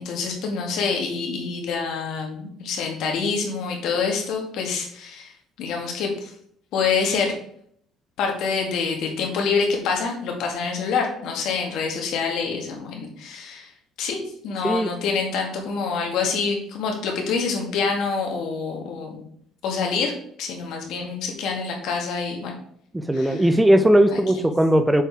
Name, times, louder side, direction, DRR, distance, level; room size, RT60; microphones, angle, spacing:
voice 1, 0.0-5.3 5.6-6.3 6.7-7.3 8.2-13.7 14.0-19.2 19.6-22.5 23.1-23.5 24.1-24.5, left 5 dB, 70° left, 1 dB, 2.1 m, -26 dB
voice 2, 22.9-25.0, right 1 dB, 10° right, 10 dB, 0.5 m, -18 dB
6.8 x 4.6 x 4.7 m, 0.66 s
cardioid pair, 125°, 0 cm